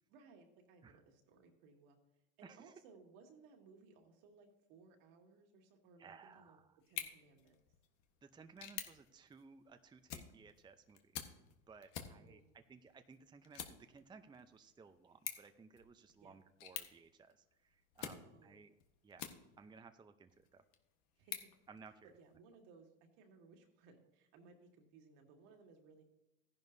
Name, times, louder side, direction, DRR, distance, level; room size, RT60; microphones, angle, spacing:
voice 1, 0.1-2.0 2.4-6.6 6.9-7.6 12.0-12.5 16.2-16.3 18.2-18.6 21.2-21.5 22.0-26.0, right 4 dB, 70° right, 2 dB, 2.3 m, -63 dB
voice 2, 2.4-2.7 6.0-6.8 8.2-11.1 11.7-18.7 19.0-19.3 19.6-20.6 21.7-22.1, right 5 dB, 15° right, 9 dB, 0.6 m, -59 dB
sound 1, 6.8-19.8 20.3-22.4, left 10 dB, 75° left, 1.3 m, -51 dB
14.5 x 10.5 x 2.7 m, 0.94 s
supercardioid pair, 95°, 29 cm